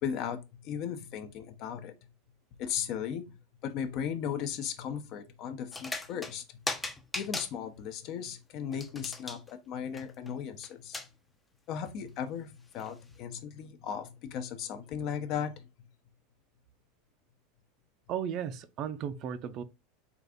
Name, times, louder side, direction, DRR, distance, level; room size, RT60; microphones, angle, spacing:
voice 1, 0.0-1.9 2.6-3.3 3.6-6.6 7.1-11.0 11.7-15.7, left 8 dB, 50° left, 0.7 m, -36 dB
sound 1, 5.7-6.4 6.7-7.5 8.7-9.5 9.9-10.3 10.6-10.7 10.9-11.1 11.9-12.0 12.8-12.9, left 2 dB, 10° left, 0.5 m, -37 dB
voice 2, 18.1-19.6, right 8 dB, 45° right, 0.4 m, -35 dB
3.8 x 2.4 x 3.6 m
supercardioid pair, 125°, 0 cm